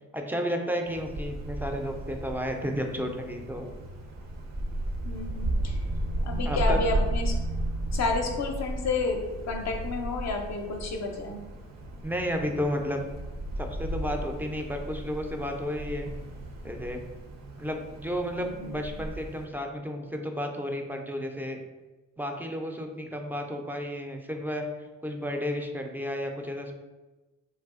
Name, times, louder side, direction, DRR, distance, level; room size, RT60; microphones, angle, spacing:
voice 1, 0.1-3.7 6.4-6.8 12.0-13.1 13.6-16.1 16.6-17.0 17.6-21.6 22.2-24.7 25.0-26.7, equal, 5° right, 3 dB, 0.3 m, -32 dB
Wind, 0.9-19.4, right 1 dB, 55° right, 0.5 m, -34 dB
voice 2, 5.0-5.8 6.2-7.3 7.9-9.2 9.4-11.4 18.4-18.9, left 3 dB, 55° left, 2 dB, 0.5 m, -31 dB
3.2 x 2.6 x 2.4 m, 1.2 s
cardioid pair, 75°, 33 cm